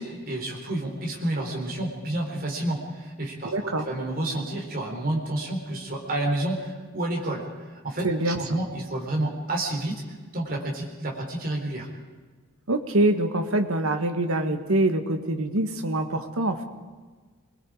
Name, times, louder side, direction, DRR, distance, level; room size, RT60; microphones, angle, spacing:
voice 1, 0.0-10.0 10.3-11.9, right 1 dB, 40° right, 0 dB, 3.9 m, -30 dB
voice 2, 3.4-3.8 8.0-8.6 12.7-16.6, right 1 dB, 70° right, 6 dB, 1.7 m, -25 dB
26.5 x 21.5 x 5.0 m, 1.4 s
head